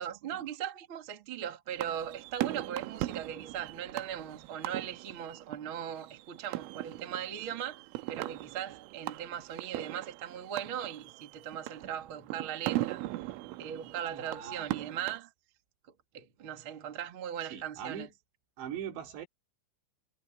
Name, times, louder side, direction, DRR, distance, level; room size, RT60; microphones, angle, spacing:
voice 1, 0.0-13.0 13.6-15.3 16.1-18.1, right 9 dB, 40° right, 1.9 m, -39 dB
sound 1, 1.7-15.2, right 17 dB, 85° right, 3.3 m, -39 dB
voice 2, 14.1-14.7 17.5-18.1 18.6-19.3, right 8 dB, 65° right, 4.7 m, -41 dB
omnidirectional pair, 5.7 m